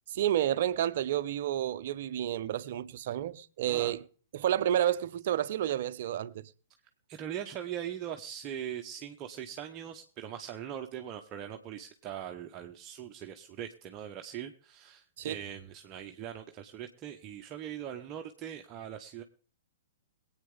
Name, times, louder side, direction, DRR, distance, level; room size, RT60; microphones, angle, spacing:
voice 1, 0.1-4.0 4.3-6.5 15.2-15.4, right 11 dB, 50° right, 0.7 m, -30 dB
voice 2, 7.1-19.2, right 10 dB, 25° right, 0.9 m, -41 dB
22.5 x 8.9 x 3.7 m
figure-of-eight pair, 110°, 0 cm